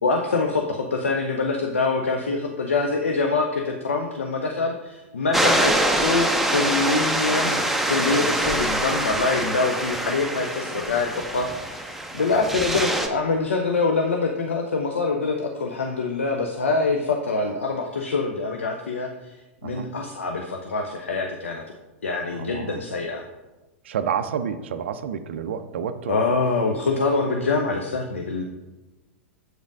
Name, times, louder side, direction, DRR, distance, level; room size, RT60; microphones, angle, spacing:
voice 1, 0.0-19.4 19.6-21.6 22.0-23.2 26.1-28.4, left 3 dB, 75° left, 2 dB, 0.5 m, -25 dB
sound 1, 5.3-13.1, right 1 dB, 5° right, 0.5 m, -24 dB
voice 2, 8.3-8.6 12.4-12.6 19.6-19.9 22.3-22.8 23.8-26.2, right 8 dB, 60° right, 10 dB, 0.3 m, -30 dB
7.6 x 5.0 x 2.5 m, 1.1 s
figure-of-eight pair, 95°, 7 cm